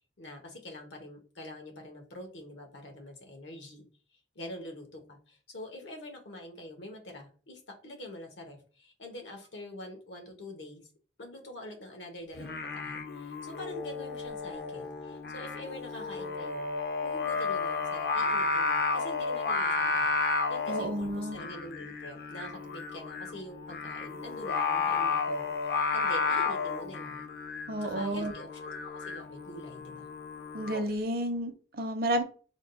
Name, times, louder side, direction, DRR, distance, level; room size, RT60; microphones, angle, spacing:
voice 1, 0.2-3.9 4.3-10.8 11.2-16.7 17.0-20.1 20.5-25.5 25.9-27.2 27.8-30.1, left 1 dB, 80° left, 3 dB, 1.0 m, -45 dB
Singing, 12.3-30.8, left 4 dB, 55° left, 0.5 m, -32 dB
voice 2, 20.7-21.4 27.7-28.3 30.5-32.2, right 1 dB, 55° right, 6 dB, 0.6 m, -31 dB
3.6 x 2.3 x 3.7 m, 0.39 s
head